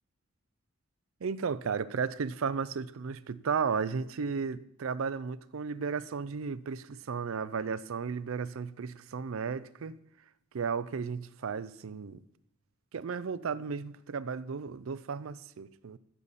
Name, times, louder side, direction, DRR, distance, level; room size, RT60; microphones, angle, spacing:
voice 1, 1.2-10.0 10.5-12.2 12.9-16.0, right 5 dB, 75° right, 16 dB, 0.5 m, -34 dB
13.5 x 6.9 x 4.1 m, 0.81 s
head